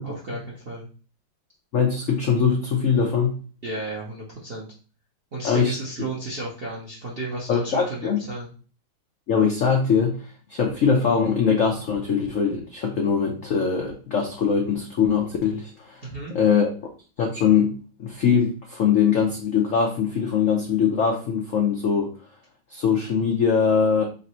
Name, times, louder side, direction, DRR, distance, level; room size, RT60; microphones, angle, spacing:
voice 1, 0.0-0.9 3.6-4.7 5.3-8.5 16.0-16.4, right 2 dB, 60° right, -4 dB, 0.6 m, -33 dB
voice 2, 1.7-3.3 5.4-5.7 7.5-8.2 9.3-10.1 10.5-16.1 16.3-16.7 17.2-17.7 18.0-22.1 22.7-24.0, left 6 dB, 85° left, 1 dB, 0.6 m, -22 dB
3.9 x 2.6 x 4.2 m, 0.38 s
omnidirectional pair, 2.3 m